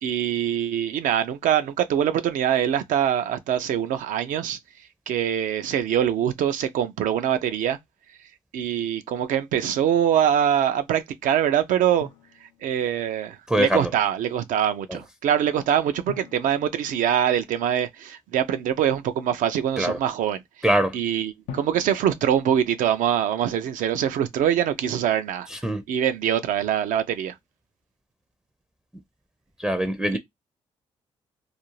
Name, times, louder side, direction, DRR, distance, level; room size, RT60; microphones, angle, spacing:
voice 1, 0.0-4.6 5.1-7.8 8.5-12.1 12.6-20.4 20.9-25.5 25.9-27.3 30.1-30.2, right 9 dB, 75° right, 0.4 m, -23 dB
Drum, 12.0-13.1 16.1-17.9 21.5-23.5, left 6 dB, 85° left, 0.4 m, -44 dB
voice 2, 13.5-13.9 14.9-15.0 19.8-20.0 20.6-21.0 25.5-25.8 29.6-30.2, right 1 dB, 5° right, 0.5 m, -23 dB
2.5 x 2.0 x 3.0 m
supercardioid pair, 55°, 14 cm